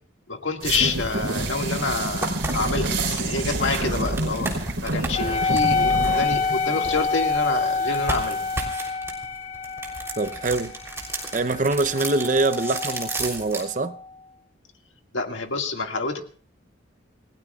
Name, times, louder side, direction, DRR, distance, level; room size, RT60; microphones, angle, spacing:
voice 1, 0.3-4.5 4.8-8.5 15.1-16.2, left 3 dB, 80° left, 4 dB, 1.9 m, -27 dB
sound 1, 0.6-8.6, right 2 dB, 75° right, 3.1 m, -29 dB
sound 2, 2.1-7.4 7.9-13.7, right 2 dB, 15° right, 3.3 m, -34 dB
Wind instrument woodwind instrument, 5.1-14.1, left 4 dB, 35° left, 0.7 m, -27 dB
voice 2, 10.2-10.7 11.3-14.0, right 3 dB, 40° right, 13 dB, 0.6 m, -24 dB
28.0 x 17.5 x 2.4 m, 0.43 s
head